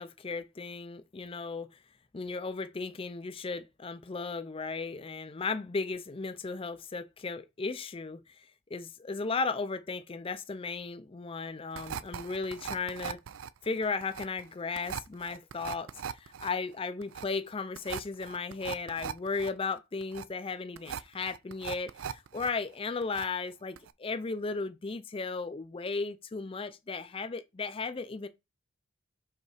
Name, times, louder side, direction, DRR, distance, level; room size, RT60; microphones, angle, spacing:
voice 1, 0.0-1.7 2.1-13.2 13.6-28.3, left 4 dB, 25° left, 0.4 m, -35 dB
sound 1, 11.7-22.5 22.8-23.5 23.8-23.9, right 8 dB, 70° right, 0.4 m, -40 dB
5.4 x 3.9 x 4.8 m
head